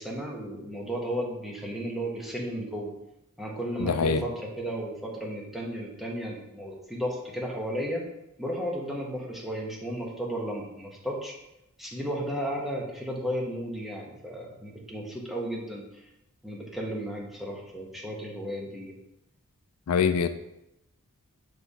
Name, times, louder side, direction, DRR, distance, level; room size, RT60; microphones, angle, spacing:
voice 1, 0.0-2.9 3.4-8.0 8.4-11.3 11.8-16.0 16.4-18.9, equal, ahead, -3 dB, 1.1 m, -34 dB
voice 2, 3.8-4.2 19.9-20.3, left 6 dB, 80° left, 10 dB, 0.4 m, -24 dB
7.6 x 3.3 x 4.1 m, 0.88 s
head